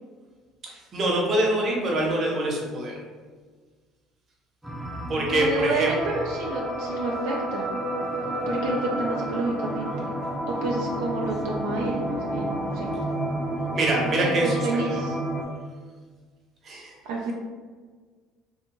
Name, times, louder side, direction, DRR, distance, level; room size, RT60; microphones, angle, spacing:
voice 1, 0.6-3.0 5.1-5.9 13.7-14.8 16.6-16.9, right 1 dB, 40° right, -2 dB, 0.8 m, -25 dB
sound 1, 4.6-15.4, right 1 dB, 5° right, 0.5 m, -30 dB
voice 2, 5.2-7.7 8.5-10.1 10.5-12.9 14.0-15.2 17.0-17.3, right 2 dB, 85° right, -2 dB, 0.4 m, -30 dB
2.7 x 2.5 x 2.9 m, 1.5 s
supercardioid pair, 95°, 0 cm